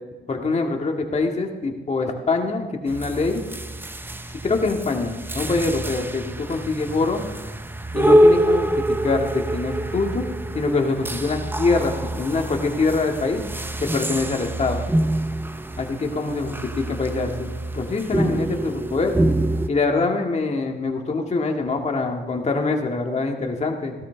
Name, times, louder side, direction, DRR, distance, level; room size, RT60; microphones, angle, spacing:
voice 1, 0.3-3.4 4.4-7.2 7.9-10.2 10.5-13.4 13.8-14.8 15.8-19.1 19.7-24.0, left 3 dB, 35° left, 2 dB, 1.9 m, -24 dB
sound 1, 2.9-19.7, right 1 dB, 10° right, 0.6 m, -25 dB
16.5 x 12.5 x 3.4 m, 1.2 s
cardioid pair, 90°, 20 cm